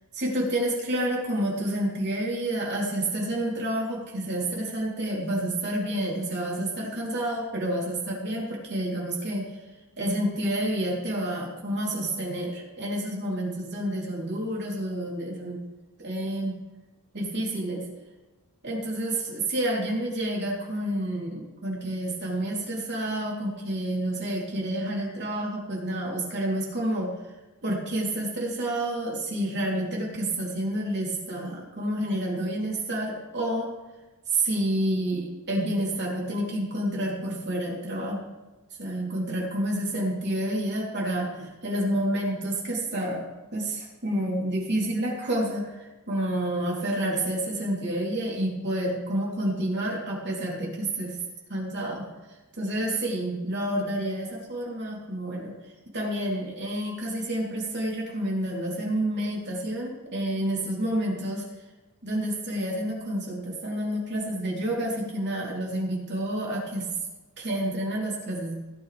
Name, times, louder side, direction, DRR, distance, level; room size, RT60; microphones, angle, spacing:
voice 1, 0.1-9.5 10.0-15.6 16.0-16.6 17.1-17.8 18.6-27.1 27.6-33.7 34.3-38.2 38.8-51.2 51.5-52.0 52.6-55.5 55.9-61.4 62.0-66.9 67.4-68.6, right 1 dB, 50° right, -3 dB, 3.3 m, -29 dB
17.0 x 9.0 x 3.4 m, 1.2 s
head